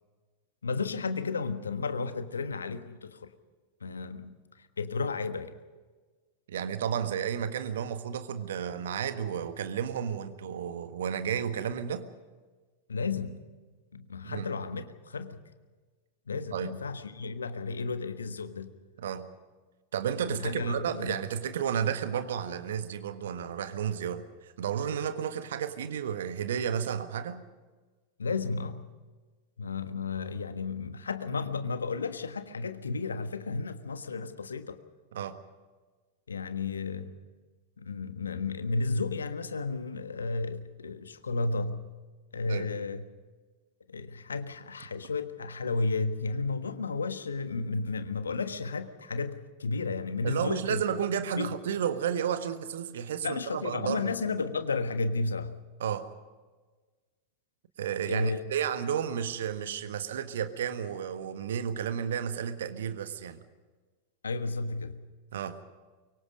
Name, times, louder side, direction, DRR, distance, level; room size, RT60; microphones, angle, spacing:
voice 1, 0.6-3.3 3.8-4.3 4.8-5.5 12.9-13.4 13.9-15.4 16.3-18.7 20.3-21.2 28.2-28.8 29.6-34.8 36.3-37.1 37.8-41.8 42.3-43.0 43.9-50.8 51.4-51.5 53.2-55.5 58.1-58.4 64.2-65.0, left 4 dB, 75° left, 10 dB, 1.4 m, -33 dB
voice 2, 6.5-12.1 14.2-14.5 16.5-16.8 19.0-19.3 19.9-27.4 35.1-35.4 42.4-42.7 50.2-54.2 55.8-56.1 57.8-63.4 65.3-65.6, right 8 dB, 60° right, 10 dB, 1.6 m, -32 dB
24.0 x 23.5 x 5.4 m, 1.3 s
figure-of-eight pair, 90°, 0 cm